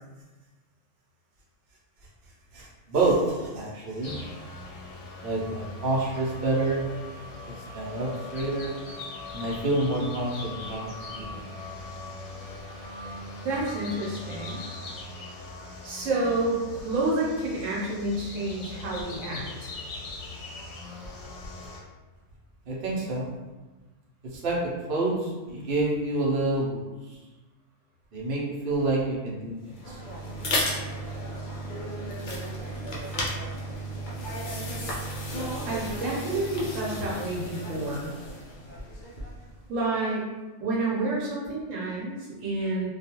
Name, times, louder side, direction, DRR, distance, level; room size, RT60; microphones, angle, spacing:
voice 1, 2.5-4.1 5.2-6.9 7.5-8.8 9.3-11.4 22.7-23.3 24.3-26.9 28.1-29.5 29.9-30.0, right 2 dB, 55° right, -5 dB, 0.8 m, -28 dB
sound 1, 4.0-21.8, left 3 dB, 90° left, 1.1 m, -40 dB
voice 2, 13.4-14.6 15.8-19.7 35.6-38.1 39.7-40.2 40.6-42.9, right 2 dB, 80° right, -5 dB, 1.1 m, -29 dB
sound 2, 29.6-39.5, equal, 55° left, 0.5 m, -34 dB
2.3 x 2.3 x 2.8 m, 1.2 s
omnidirectional pair, 1.3 m